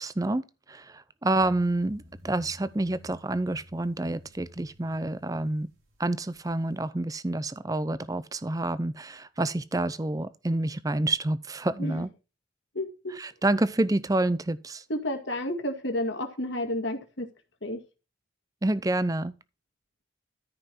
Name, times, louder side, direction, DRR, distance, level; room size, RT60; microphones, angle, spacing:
voice 1, 0.0-5.7 6.0-12.1 13.2-14.8 18.6-19.3, right 2 dB, 15° right, 0.5 m, -28 dB
sound 1, 1.3-6.8, equal, 85° right, 4.6 m, -52 dB
voice 2, 12.7-13.1 14.9-17.3 17.6-17.8, left 1 dB, 65° left, 2.1 m, -31 dB
13.5 x 5.5 x 4.3 m
head